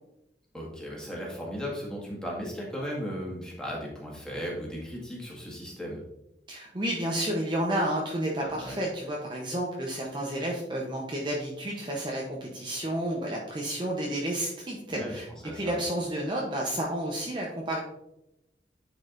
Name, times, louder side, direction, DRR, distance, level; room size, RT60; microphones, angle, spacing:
voice 1, 0.5-6.0 8.4-8.8 14.9-15.8, equal, 5° left, -4 dB, 1.8 m, -36 dB
voice 2, 6.5-15.3 15.5-17.8, right 1 dB, 25° right, -2 dB, 0.8 m, -31 dB
9.6 x 4.7 x 2.6 m, 0.87 s
head